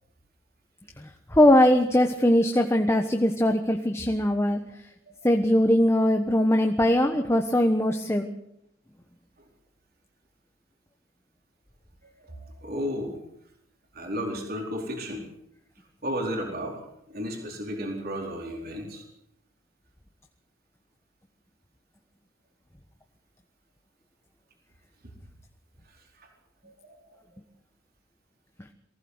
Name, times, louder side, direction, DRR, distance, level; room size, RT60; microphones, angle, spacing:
voice 1, 1.0-4.6 5.2-8.3, left 1 dB, 15° left, 4 dB, 1.2 m, -21 dB
voice 2, 12.0-13.2 13.9-15.2 16.0-19.0 25.0-25.1 26.2-26.3 26.6-27.2, equal, 45° right, 1 dB, 4.4 m, -34 dB
23.0 x 16.0 x 8.0 m, 0.77 s
head